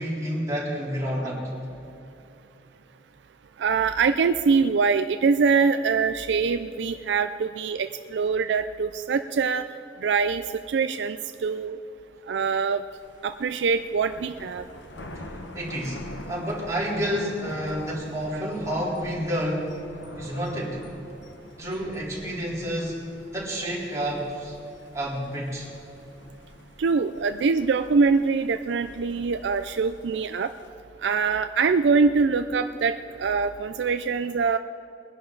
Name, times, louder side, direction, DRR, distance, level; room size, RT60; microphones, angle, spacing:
voice 1, 0.0-1.4 15.3-16.0 16.3-19.8 20.1-20.9 21.6-24.6 24.9-25.7, equal, 20° right, -6 dB, 3.8 m, -29 dB
voice 2, 3.6-9.6 10.0-11.8 12.3-12.9 13.2-14.6 18.3-18.4 26.8-30.5 31.0-34.6, right 5 dB, 70° right, 9 dB, 0.4 m, -24 dB
Thunder, 12.9-30.7, left 1 dB, 85° left, 1.2 m, -45 dB
21.5 x 11.0 x 3.9 m, 2.8 s
head